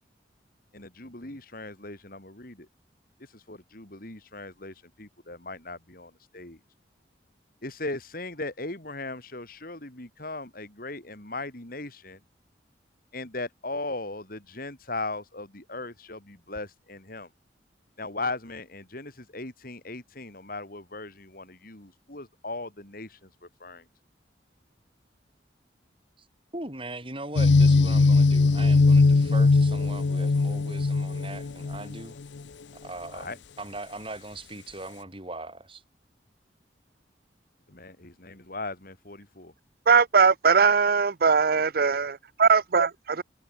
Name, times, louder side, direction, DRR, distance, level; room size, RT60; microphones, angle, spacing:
voice 1, 0.7-2.7 3.2-6.6 7.6-12.2 13.1-17.3 18.0-23.3 23.6-23.9 33.1-33.4 37.7-39.5, left 2 dB, 50° left, 3.7 m, -38 dB
voice 2, 26.5-32.2 32.7-35.8, right 2 dB, 30° right, 8.0 m, -40 dB
sound 1, 27.4-32.0, left 3 dB, 80° left, 0.6 m, -20 dB
voice 3, 39.9-42.1 42.4-42.9, right 5 dB, 55° right, 0.7 m, -20 dB
head